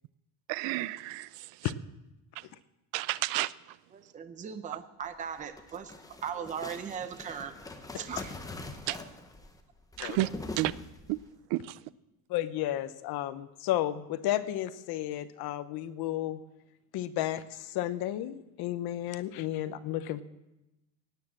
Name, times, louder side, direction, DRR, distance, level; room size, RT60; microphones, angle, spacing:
voice 1, 0.5-1.3 2.9-3.5 8.9-9.0 10.0-10.3 10.6-10.7 11.1-11.2 11.5-11.6, right 19 dB, 85° right, 0.6 m, -30 dB
voice 2, 3.9-5.9 6.2-7.5 7.9-8.3, right 7 dB, 20° right, 0.7 m, -38 dB
sound 1, 5.3-11.3, left 2 dB, 10° left, 0.9 m, -43 dB
voice 3, 12.3-16.4 16.9-20.2, left 13 dB, 60° left, 0.9 m, -33 dB
17.5 x 9.8 x 7.5 m
cardioid pair, 180°, 42 cm